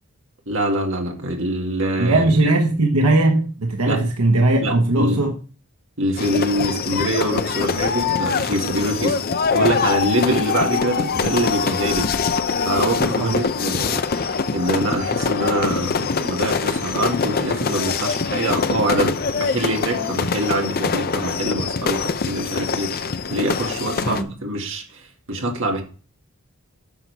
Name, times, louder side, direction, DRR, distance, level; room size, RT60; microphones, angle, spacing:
voice 1, 0.5-2.5 3.9-4.0 4.6-5.2 6.0-9.2 9.5-12.1 12.6-25.0 25.3-25.8, right 1 dB, 60° right, 2.1 m, -24 dB
voice 2, 2.0-5.3 13.2-13.3 24.0-24.2, right 2 dB, 90° right, 1.2 m, -18 dB
sound 1, 6.2-24.2, left 5 dB, 45° left, 0.6 m, -23 dB
9.6 x 6.2 x 3.4 m
head